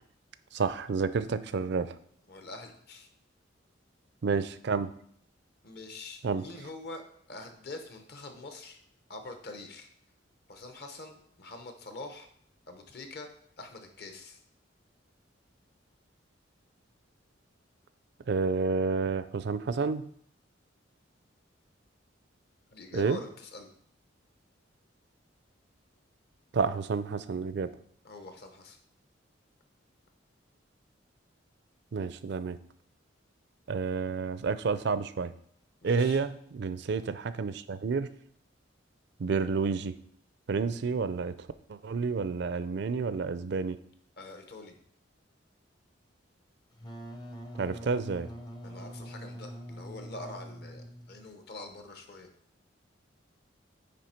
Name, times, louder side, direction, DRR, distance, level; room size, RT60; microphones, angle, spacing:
voice 1, 0.5-2.0 4.2-4.9 6.2-6.5 18.3-20.1 22.9-23.2 26.5-27.7 31.9-32.6 33.7-35.3 35.8-38.1 39.2-40.0 40.5-43.8 47.6-48.3, right 4 dB, 60° right, 13 dB, 0.4 m, -30 dB
voice 2, 2.3-3.1 5.6-8.8 9.1-9.9 10.5-12.3 12.7-13.3 13.6-14.4 22.7-23.7 28.0-28.8 35.8-36.2 44.2-44.8 48.6-52.3, left 2 dB, 55° left, 5 dB, 0.9 m, -45 dB
Wind instrument woodwind instrument, 46.7-51.3, equal, 20° left, 0.6 m, -44 dB
9.5 x 3.4 x 4.3 m, 0.64 s
head